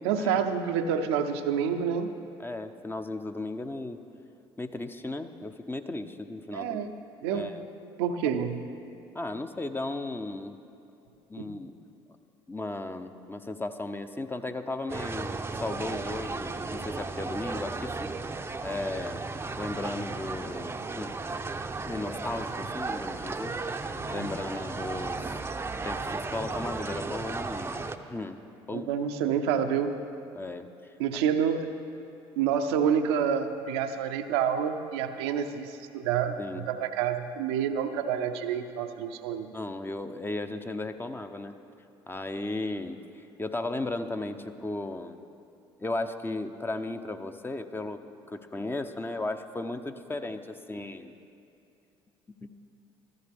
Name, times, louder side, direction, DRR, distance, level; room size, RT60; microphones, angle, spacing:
voice 1, 0.0-2.1 6.5-6.9 7.2-7.5 8.0-8.6 11.4-11.5 24.0-24.3 28.7-29.9 31.0-31.7 32.4-39.5, right 8 dB, 80° right, 6 dB, 0.6 m, -28 dB
voice 2, 2.4-4.0 4.6-6.8 7.3-7.6 8.3-8.4 9.1-10.6 11.3-11.7 12.5-18.2 18.6-19.2 19.6-21.2 21.8-23.6 24.1-28.9 29.2-29.3 30.3-31.2 36.4-36.7 39.5-41.6 42.1-45.2 45.8-48.0 48.3-51.1 52.4-52.5, left 2 dB, 15° left, 8 dB, 0.7 m, -36 dB
sound 1, 14.9-28.0, right 3 dB, 20° right, 0.6 m, -35 dB
14.5 x 14.0 x 3.5 m, 2.6 s
hypercardioid pair, 60°, 13 cm